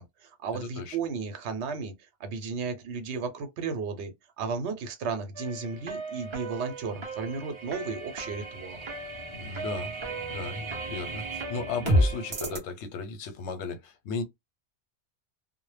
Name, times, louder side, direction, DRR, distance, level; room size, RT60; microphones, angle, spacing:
voice 1, 0.0-1.9 2.2-8.9, right 5 dB, 80° right, 0.9 m, -34 dB
voice 2, 0.5-1.0 9.3-9.9 10.3-14.2, left 4 dB, 90° left, 0.9 m, -36 dB
sound 1, 5.3-12.6, right 1 dB, 35° right, 0.5 m, -32 dB
2.0 x 2.0 x 3.1 m
omnidirectional pair, 1.1 m